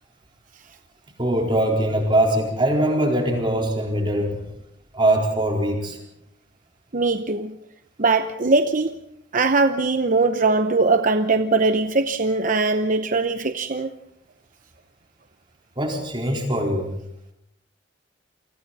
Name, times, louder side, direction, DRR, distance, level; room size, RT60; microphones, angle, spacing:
voice 1, 1.2-4.4 4.9-6.0 15.8-16.9, right 1 dB, 25° right, 0 dB, 4.3 m, -22 dB
voice 2, 6.9-7.5 8.0-8.9 9.3-13.9, right 3 dB, 45° right, 8 dB, 0.9 m, -20 dB
29.0 x 24.5 x 4.2 m, 0.80 s
head